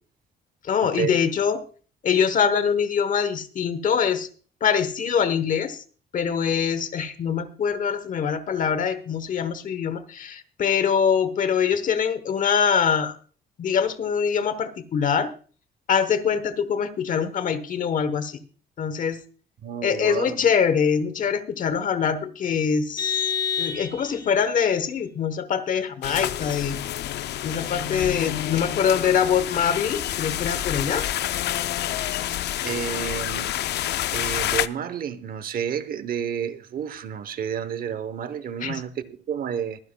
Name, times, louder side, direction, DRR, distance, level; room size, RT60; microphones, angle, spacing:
voice 1, 0.6-1.6 2.0-4.3 4.6-5.8 6.1-13.1 13.6-15.3 15.9-18.4 18.8-19.2 19.8-23.2 23.6-26.8 27.4-31.1 38.6-38.8, left 7 dB, 45° left, 1.0 m, -24 dB
voice 2, 19.6-20.4 32.6-33.5 34.1-39.8, right 8 dB, 50° right, 0.9 m, -30 dB
Vehicle horn car horn honking, 23.0-24.4, left 7 dB, 20° left, 4.8 m, -27 dB
sound 1, 26.0-34.7, left 12 dB, 60° left, 0.5 m, -28 dB
23.0 x 10.0 x 2.2 m
cardioid pair, 170°, 19 cm